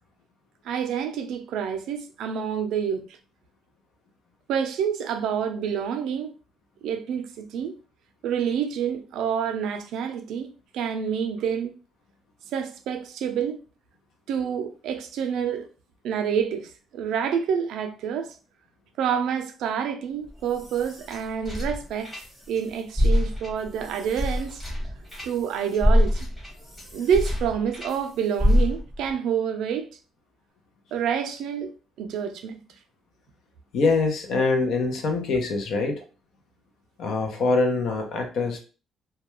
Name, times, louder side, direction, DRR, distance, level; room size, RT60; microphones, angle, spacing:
voice 1, 0.6-3.1 4.5-6.3 6.8-7.8 8.2-10.5 10.7-11.7 12.5-13.6 14.3-15.7 16.0-18.3 19.0-22.1 22.5-24.6 25.2-26.3 26.9-29.9 30.9-31.7 32.0-32.6, right 7 dB, 75° right, 0.4 m, -28 dB
sound 1, 20.3-22.6 22.9-28.0 28.4-29.1, left 1 dB, 15° left, 1.1 m, -25 dB
voice 2, 33.7-36.0 37.0-38.6, left 3 dB, 60° left, 0.6 m, -24 dB
2.2 x 2.2 x 3.0 m
cardioid pair, 155°, 0 cm